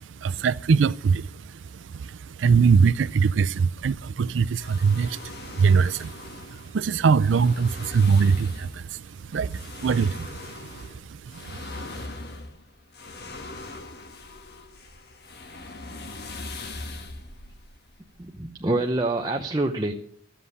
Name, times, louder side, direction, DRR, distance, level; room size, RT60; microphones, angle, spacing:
voice 1, 0.2-6.1 6.5-9.0 9.3-10.6 10.9-11.0 11.3-11.6, right 5 dB, 85° right, 0.4 m, -22 dB
sound 1, 4.5-18.4, left 2 dB, 55° left, 1.5 m, -41 dB
voice 2, 18.2-19.9, right 2 dB, 20° right, 0.8 m, -26 dB
14.0 x 7.7 x 8.2 m
head